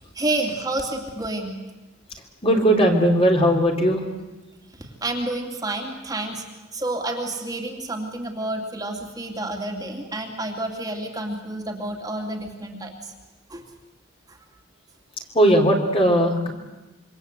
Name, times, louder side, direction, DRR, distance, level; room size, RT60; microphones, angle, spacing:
voice 1, 0.1-1.6 4.8-6.4 6.7-13.1 13.5-13.6 14.3-14.4, right 2 dB, 20° right, 2 dB, 2.8 m, -29 dB
voice 2, 2.4-4.0 15.4-16.5, equal, 30° left, 2 dB, 3.7 m, -18 dB
27.0 x 24.5 x 8.2 m, 1.1 s
head